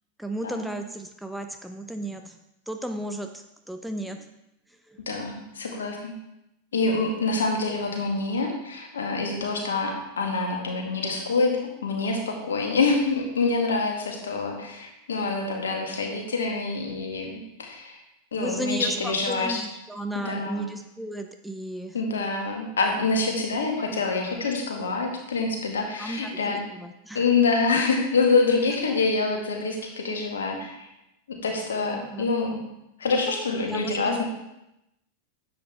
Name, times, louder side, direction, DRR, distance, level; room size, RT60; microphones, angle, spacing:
voice 1, 0.2-2.4 2.7-4.3 4.9-5.0 18.3-22.0 26.0-27.2 28.9-29.0 31.9-32.3 33.7-34.2, right 1 dB, ahead, 5 dB, 0.6 m, -34 dB
voice 2, 5.1-6.1 6.7-18.0 18.3-19.6 20.1-20.7 21.9-26.6 27.1-30.9 31.3-32.6 33.0-34.2, left 3 dB, 65° left, 1 dB, 1.8 m, -26 dB
10.5 x 7.8 x 3.4 m, 0.87 s
figure-of-eight pair, 90°, 0 cm